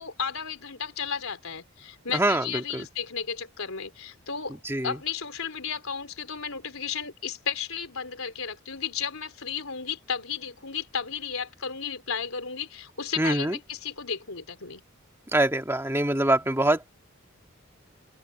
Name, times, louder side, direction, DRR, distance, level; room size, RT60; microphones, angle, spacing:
voice 1, 0.0-4.6 4.8-14.8, left 7 dB, 85° left, 3.8 m, -34 dB
voice 2, 2.1-2.4 2.7-2.8 4.7-4.9 13.2-13.6 15.3-16.9, right 1 dB, 10° right, 1.9 m, -24 dB
open air
head